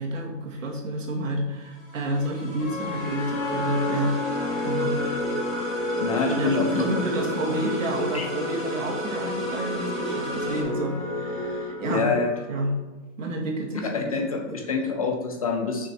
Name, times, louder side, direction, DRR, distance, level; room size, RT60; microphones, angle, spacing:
voice 1, 0.0-4.1 4.6-5.0 6.3-12.1 12.5-12.7 13.2-14.3, right 1 dB, 80° right, 0 dB, 2.3 m, -30 dB
sound 1, 1.5-10.6, right 1 dB, ahead, 1.5 m, -37 dB
sound 2, 2.6-12.8, left 1 dB, 90° left, 2.1 m, -30 dB
voice 2, 6.0-7.0 8.1-8.3 11.9-12.3 13.7-15.9, left 4 dB, 30° left, 3 dB, 0.6 m, -26 dB
6.1 x 6.1 x 4.5 m, 1.2 s
hypercardioid pair, 175°, 38 cm